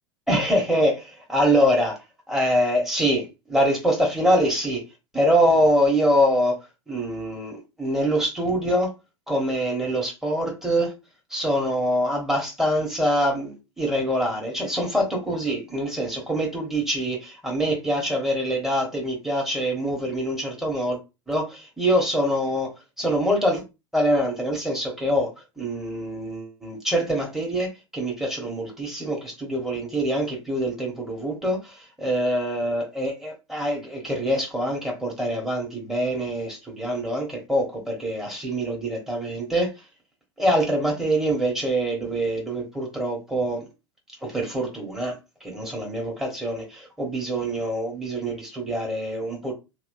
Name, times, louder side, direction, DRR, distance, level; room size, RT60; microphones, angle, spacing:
voice 1, 0.3-4.8 5.1-6.5 6.9-8.9 9.3-10.9 11.3-21.0 21.3-22.7 23.0-23.6 23.9-25.3 25.6-39.7 40.4-43.7 44.3-45.2 45.4-49.5, equal, ahead, 1.3 m, -24 dB
3.0 x 2.8 x 2.6 m
figure-of-eight pair, 90°, 16 cm